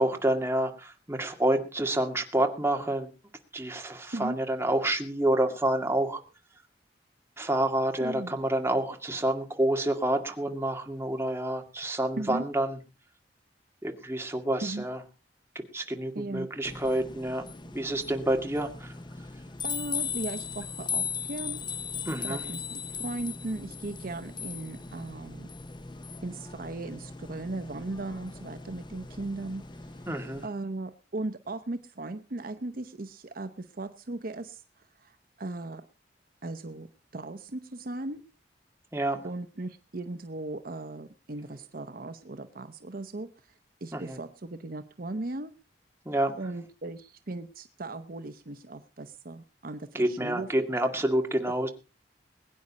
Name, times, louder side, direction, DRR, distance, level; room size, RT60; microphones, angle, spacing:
voice 1, 0.0-3.1 3.5-6.2 7.4-12.8 13.8-15.0 15.7-17.5 17.7-18.9 22.1-22.4 30.1-30.4 38.9-39.2 43.9-44.2 46.1-46.3 49.9-51.7, right 1 dB, 15° right, 4 dB, 2.2 m, -28 dB
voice 2, 8.0-8.3 12.2-12.4 14.6-14.9 16.1-16.5 19.6-21.6 22.2-25.5 26.2-30.1 30.4-34.6 35.0-35.8 36.4-38.2 39.2-43.3 43.8-45.5 46.4-50.5, right 2 dB, 55° right, 9 dB, 0.9 m, -37 dB
sound 1, 16.6-30.5, left 6 dB, 25° left, 0.8 m, -38 dB
21.5 x 9.6 x 4.1 m, 0.33 s
head